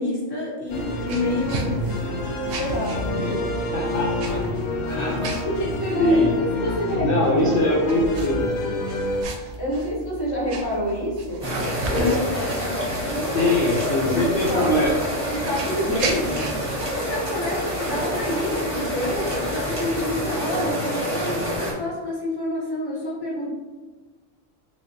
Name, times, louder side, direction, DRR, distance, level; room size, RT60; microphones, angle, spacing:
voice 1, 0.0-1.8 2.5-3.6 5.4-7.7 9.6-11.5 11.9-12.7 13.0-13.5 13.9-14.7 15.3-16.3 16.9-23.5, left 1 dB, 25° left, -3 dB, 0.7 m, -28 dB
sound 1, 0.7-9.2, left 1 dB, 85° left, 1.0 m, -28 dB
sound 2, 0.7-20.3, right 3 dB, 65° right, 0.8 m, -36 dB
voice 2, 3.7-4.4 4.9-5.2 6.0-6.3 6.7-6.8 7.0-8.8 11.9-12.2 13.3-15.0, left 2 dB, 60° left, -4 dB, 0.6 m, -22 dB
sound 3, 11.4-21.7, equal, 25° right, 0.9 m, -27 dB
3.3 x 3.2 x 2.6 m, 1.3 s
omnidirectional pair, 1.3 m